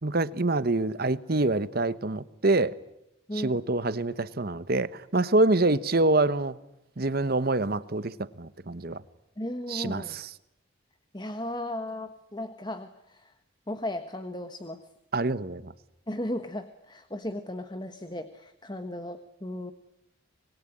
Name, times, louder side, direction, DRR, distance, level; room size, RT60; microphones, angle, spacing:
voice 1, 0.0-2.8 3.4-6.6 7.0-9.0 9.7-10.3 15.1-15.7, right 2 dB, 50° right, 1.0 m, -26 dB
voice 2, 3.3-3.6 9.4-10.2 11.1-13.3 13.7-14.8 16.1-19.7, left 1 dB, 20° left, 1.3 m, -36 dB
26.0 x 22.0 x 9.9 m
head